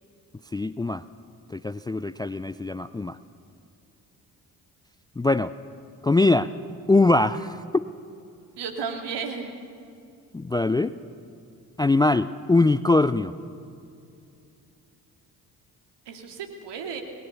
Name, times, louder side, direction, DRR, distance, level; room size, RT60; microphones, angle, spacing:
voice 1, 0.5-1.0 1.5-3.2 5.2-5.5 6.0-6.5 6.9-7.9 10.3-10.9 11.8-13.3, left 2 dB, 10° left, 15 dB, 0.4 m, -22 dB
voice 2, 8.6-9.5 16.1-17.0, right 6 dB, 55° right, 3 dB, 3.0 m, -33 dB
28.5 x 20.0 x 6.9 m, 2.6 s
figure-of-eight pair, 45°, 49 cm